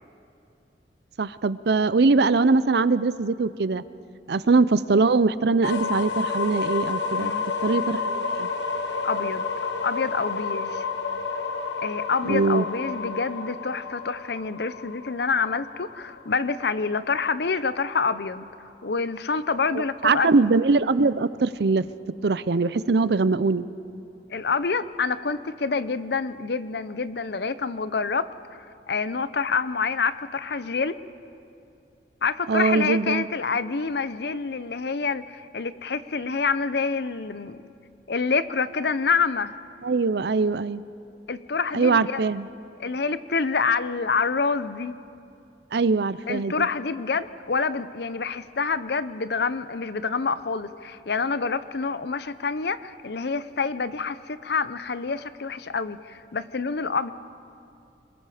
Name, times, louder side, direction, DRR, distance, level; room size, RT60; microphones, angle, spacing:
voice 1, 1.2-3.8 4.3-7.3 7.6-8.5 12.3-12.6 20.0-21.9 22.2-23.7 32.5-33.3 39.8-40.8 41.7-42.5 45.7-46.7, right 4 dB, 65° right, 16 dB, 0.6 m, -22 dB
sound 1, 5.6-17.4, left 4 dB, 90° left, 1.4 m, -30 dB
voice 2, 7.1-7.5 9.0-9.5 9.8-10.8 11.8-20.3 24.3-28.3 28.9-31.0 32.2-37.6 38.1-39.5 41.3-42.2 42.8-44.9 46.3-57.1, left 5 dB, 65° left, 14 dB, 0.7 m, -27 dB
27.0 x 21.5 x 5.0 m, 2.6 s
head